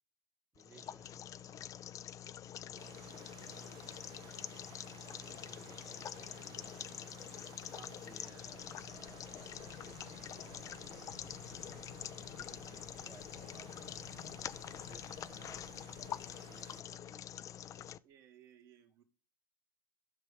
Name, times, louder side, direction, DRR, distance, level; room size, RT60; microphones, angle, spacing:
voice 1, 0.5-1.7 2.6-3.9 5.0-6.9 7.7-11.9 12.3-14.2 14.7-15.7 16.3-17.4, right 4 dB, 20° right, 1.1 m, -61 dB
sound 1, 0.6-18.0, left 10 dB, 30° left, 0.4 m, -46 dB
Water, 2.8-16.8, right 12 dB, 40° right, 0.6 m, -57 dB
sound 2, 8.2-16.3, left 5 dB, 70° left, 1.7 m, -57 dB
voice 2, 18.0-19.0, right 10 dB, 65° right, 2.3 m, -61 dB
16.0 x 5.7 x 3.4 m
hypercardioid pair, 105°, 12 cm